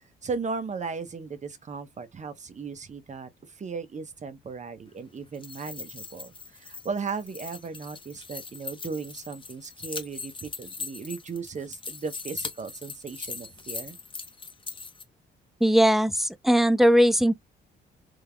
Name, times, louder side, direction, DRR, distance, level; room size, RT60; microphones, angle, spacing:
voice 1, 0.2-14.0, right 5 dB, 35° right, 1.0 m, -36 dB
sound 1, 5.2-15.0, left 4 dB, 25° left, 0.9 m, -40 dB
voice 2, 15.6-17.3, equal, ahead, 0.4 m, -19 dB
3.6 x 3.4 x 2.2 m
cardioid pair, 90°, 20 cm